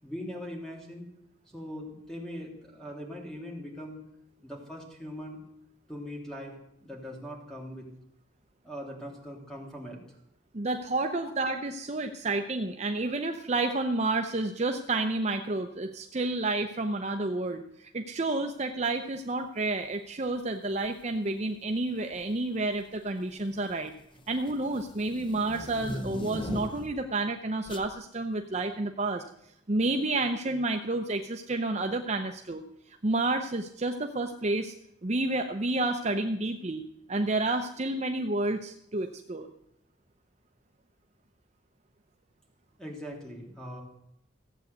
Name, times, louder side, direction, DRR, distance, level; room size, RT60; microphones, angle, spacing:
voice 1, 0.0-1.0 1.5-4.0 4.4-5.4 5.9-6.5 6.8-7.9 8.6-10.0 42.8-43.8, equal, 5° left, -1 dB, 3.1 m, -41 dB
voice 2, 10.5-23.9 24.3-29.2 29.7-34.7 35.0-36.8 37.1-39.5, right 2 dB, 35° right, 5 dB, 0.7 m, -30 dB
sound 1, 20.7-21.0 22.0-22.4 22.8-27.1 27.7-27.9, left 1 dB, 25° left, 0.7 m, -40 dB
15.5 x 8.2 x 8.0 m, 0.77 s
head